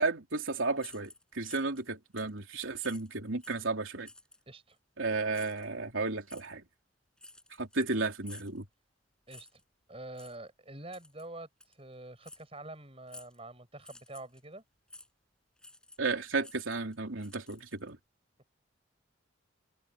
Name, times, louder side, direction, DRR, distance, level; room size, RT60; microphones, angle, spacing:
voice 1, 0.0-4.1 5.0-6.6 7.6-8.6 16.0-18.0, right 3 dB, 80° right, 3.3 m, -33 dB
sound 1, 0.8-1.9 2.2-2.4 2.8-3.7 4.1-4.4 5.3-5.7 6.3-6.5 7.2-7.9 8.2-8.6 9.3-9.6 10.1-10.4 10.9-11.3 11.6-11.7 12.2-12.4 13.1-13.4 13.8-14.4 14.9-15.1 15.6-16.1 16.4-17.9, left 2 dB, 5° left, 7.1 m, -52 dB
voice 2, 4.5-4.8 9.3-9.6 9.9-14.6, right 2 dB, 30° right, 5.8 m, -46 dB
head